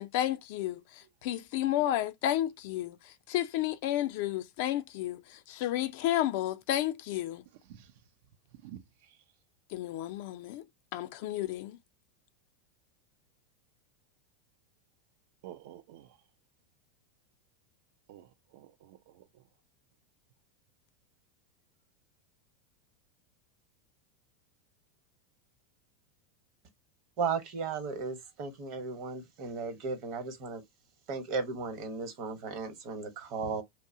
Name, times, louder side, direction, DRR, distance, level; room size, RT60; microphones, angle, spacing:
voice 1, 0.0-7.4 9.7-10.7 10.9-11.8, left 13 dB, 65° left, 0.4 m, -32 dB
voice 2, 8.5-9.2 15.4-16.2 18.1-19.4, right 11 dB, 65° right, 0.4 m, -51 dB
voice 3, 27.2-30.6 31.1-33.6, right 5 dB, 50° right, 1.0 m, -35 dB
2.7 x 2.0 x 2.5 m
supercardioid pair, 135°, 0 cm